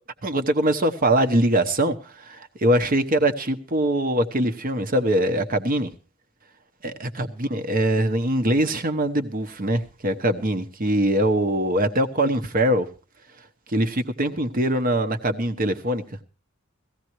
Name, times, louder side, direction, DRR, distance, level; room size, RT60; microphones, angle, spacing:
voice 1, 0.2-5.9 6.8-12.9 13.7-16.0, right 1 dB, 40° right, 8 dB, 1.1 m, -22 dB
17.5 x 15.0 x 3.1 m, 0.36 s
head